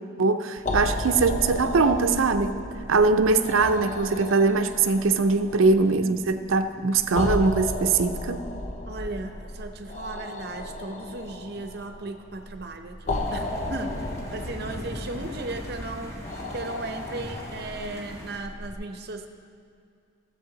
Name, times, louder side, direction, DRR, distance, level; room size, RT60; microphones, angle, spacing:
voice 1, 0.2-2.5 2.9-8.4, right 4 dB, 85° right, 9 dB, 0.5 m, -22 dB
sound 1, 0.6-18.7, left 1 dB, 35° left, 0.7 m, -34 dB
voice 2, 8.9-14.0 14.3-19.3, right 2 dB, 50° right, 6 dB, 0.7 m, -36 dB
sound 2, 13.1-18.4, equal, 15° left, 1.3 m, -40 dB
15.0 x 7.8 x 3.9 m, 2.3 s
head